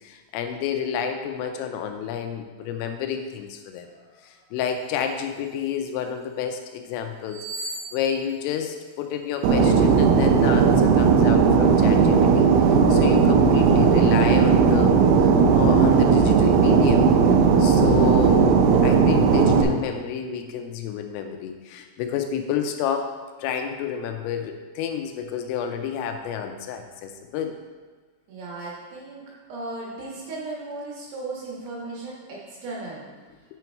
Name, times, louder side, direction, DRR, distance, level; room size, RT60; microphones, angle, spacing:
voice 1, 0.0-3.9 4.2-12.5 12.9-14.9 15.2-17.1 17.6-23.1 23.4-27.6, left 8 dB, 85° left, 6 dB, 3.2 m, -30 dB
sound 1, 4.6-6.1 7.2-9.4 9.8-10.0, right 2 dB, 30° right, 2.9 m, -40 dB
Fixed-wing aircraft airplane, 9.4-19.6, right 5 dB, 85° right, 3.4 m, -17 dB
voice 2, 28.3-33.1, right 2 dB, 65° right, -5 dB, 3.3 m, -36 dB
7.8 x 7.0 x 4.5 m, 1.4 s
omnidirectional pair, 6.0 m